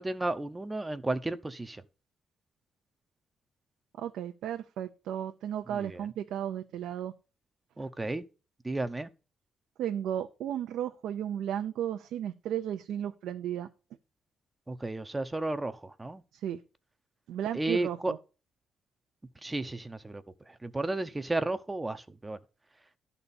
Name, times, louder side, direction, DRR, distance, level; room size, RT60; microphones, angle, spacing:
voice 1, 0.0-1.8 5.7-6.0 7.8-8.2 8.6-9.1 14.7-16.2 17.5-18.1 19.4-22.4, right 2 dB, 15° right, 0.6 m, -33 dB
voice 2, 4.0-7.1 7.8-7.9 9.8-13.7 16.3-16.6 17.3-18.2, right 10 dB, 85° right, 0.6 m, -34 dB
12.0 x 4.2 x 6.9 m
cardioid pair, 120°, 0 cm